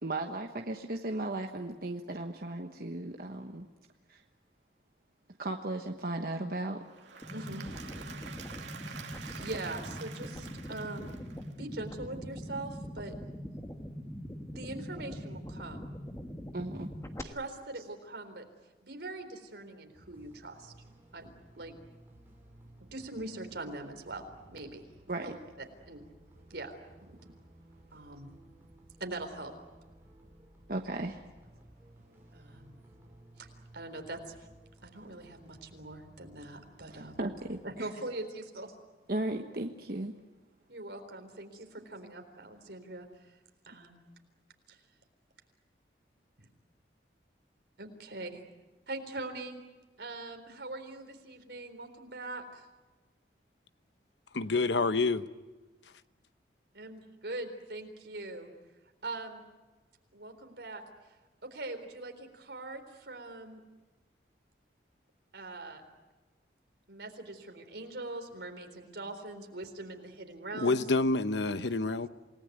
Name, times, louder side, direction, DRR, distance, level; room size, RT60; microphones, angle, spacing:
voice 1, 0.0-3.7 4.1-4.2 5.4-6.8 16.5-16.9 25.1-25.3 30.7-31.2 36.9-37.9 39.1-40.1, right 2 dB, 55° right, 3 dB, 1.3 m, -36 dB
Applause / Crowd, 6.8-11.8, right 6 dB, 90° right, 2.3 m, -47 dB
sound 1, 7.2-17.2, equal, 15° left, 1.5 m, -42 dB
voice 2, 7.3-7.7 8.9-9.0 9.2-11.1 11.6-13.1 14.5-16.0 17.2-18.4 18.8-20.7 21.1-21.3 21.6-21.7 22.8-24.8 25.2-25.3 25.9-26.0 26.5-26.8 27.9-28.3 29.0-29.5 32.3-32.8 33.4-33.5 33.7-34.3 34.8-37.1 37.6-38.7 40.7-43.1 43.6-44.0 44.7-44.8 47.8-48.4 48.9-49.6 50.0-52.7 56.7-58.5 59.0-59.4 60.1-60.8 61.5-63.6 65.3-65.8 66.9-70.8, right 2 dB, 70° right, 5 dB, 3.9 m, -42 dB
sound 2, 19.9-37.6, right 1 dB, 10° right, 6.1 m, -58 dB
voice 3, 54.3-55.3 70.5-72.1, left 3 dB, 80° left, 12 dB, 1.0 m, -28 dB
28.5 x 19.0 x 9.3 m, 1.2 s
head